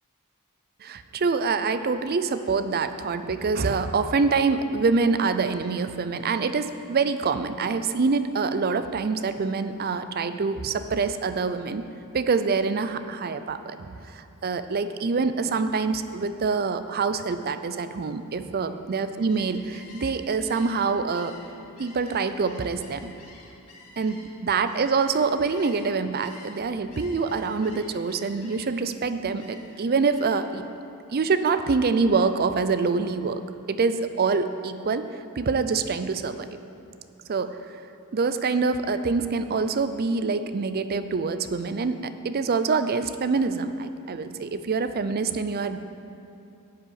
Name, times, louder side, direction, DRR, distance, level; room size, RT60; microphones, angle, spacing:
voice 1, 0.8-11.8 12.1-21.3 21.8-23.1 24.0-24.2 24.4-30.7 31.1-33.4 33.7-35.1 35.4-36.5 37.3-37.5 38.1-45.8, right 4 dB, 45° right, 11 dB, 0.5 m, -25 dB
Gull seagull, 19.1-25.9 26.2-28.9 29.4-29.8 30.1-30.6 31.0-32.4, left 3 dB, 85° left, 2.0 m, -50 dB
11.0 x 5.5 x 8.7 m, 2.7 s
head